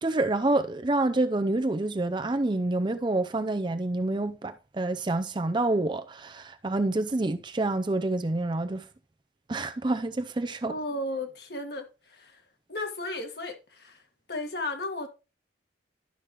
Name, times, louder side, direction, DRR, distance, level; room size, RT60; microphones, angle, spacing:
voice 1, 0.0-8.9 9.5-10.7, right 2 dB, 25° right, 0.5 m, -27 dB
voice 2, 10.7-12.4 12.7-14.0 14.3-15.1, left 2 dB, 60° left, 1.7 m, -34 dB
11.5 x 6.3 x 3.0 m
head